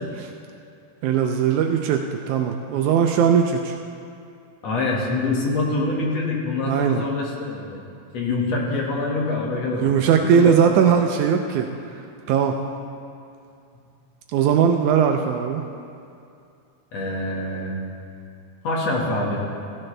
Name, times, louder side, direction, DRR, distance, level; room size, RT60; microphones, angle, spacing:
voice 1, 1.0-3.8 6.7-7.1 9.7-11.7 12.3-12.6 14.3-15.6, right 7 dB, 80° right, 4 dB, 2.0 m, -19 dB
voice 2, 4.6-7.8 8.1-9.9 10.2-11.0 16.9-17.7 18.6-19.4, left 2 dB, 60° left, -3 dB, 2.9 m, -25 dB
16.0 x 16.0 x 3.3 m, 2.5 s
omnidirectional pair, 3.5 m